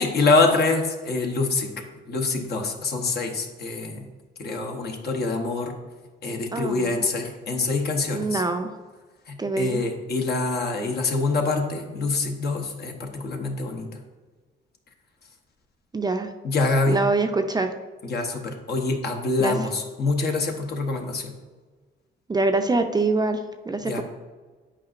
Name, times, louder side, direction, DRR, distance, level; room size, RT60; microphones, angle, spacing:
voice 1, 0.0-4.1 4.4-5.8 6.2-8.4 9.3-14.0 16.4-17.0 18.0-21.3 23.8-24.0, left 3 dB, 55° left, 3 dB, 1.0 m, -25 dB
voice 2, 6.5-7.0 8.1-8.7 9.4-9.8 15.9-16.3 16.9-17.7 19.4-19.5 22.3-23.4 23.7-24.0, right 3 dB, 20° right, 6 dB, 0.4 m, -24 dB
8.6 x 5.0 x 2.5 m, 1.4 s
cardioid pair, 90°, 20 cm